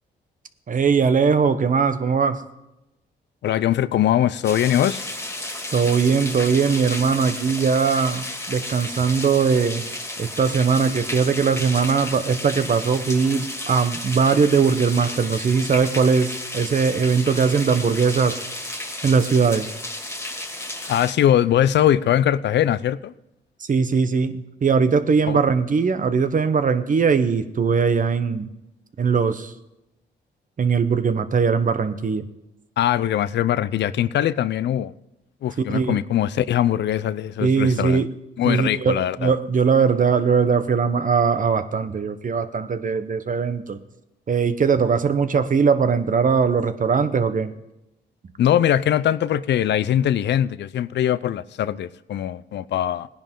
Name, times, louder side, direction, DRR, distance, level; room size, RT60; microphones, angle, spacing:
voice 1, 0.7-2.4 5.7-9.9 10.2-18.4 19.0-19.7 23.6-28.5 29.0-29.5 30.6-32.3 35.7-36.0 37.4-38.1 38.4-43.8 44.3-47.5, right 5 dB, 45° right, 1.1 m, -20 dB
voice 2, 3.4-5.0 20.9-23.1 25.3-25.4 32.8-34.9 35.4-38.0 38.4-39.3 48.4-53.1, left 11 dB, 75° left, 0.5 m, -21 dB
sound 1, 4.4-21.1, left 1 dB, 15° left, 2.3 m, -33 dB
18.0 x 10.5 x 3.8 m
cardioid pair, 75°, 18 cm